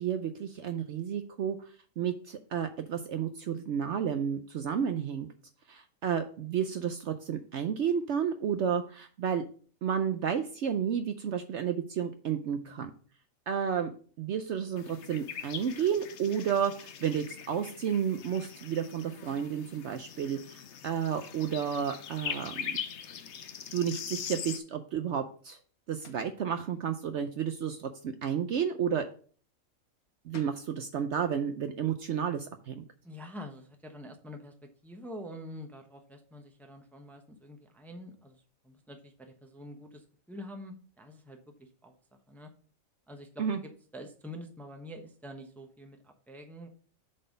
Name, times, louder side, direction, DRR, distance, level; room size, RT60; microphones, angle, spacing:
voice 1, 0.0-1.7 2.0-5.3 5.7-9.4 9.8-12.9 13.5-22.8 23.7-25.6 25.9-29.1 30.2-32.8 43.4-43.6, right 8 dB, 65° right, 8 dB, 0.8 m, -31 dB
voice 2, 12.6-13.0 33.0-42.5 43.1-46.7, equal, ahead, 4 dB, 0.8 m, -47 dB
sound 1, 14.8-24.6, left 8 dB, 60° left, 0.9 m, -42 dB
sound 2, 26.0-26.3 30.0-30.1 30.3-30.7, left 6 dB, 90° left, 1.4 m, -51 dB
7.6 x 4.1 x 5.2 m, 0.43 s
omnidirectional pair, 1.5 m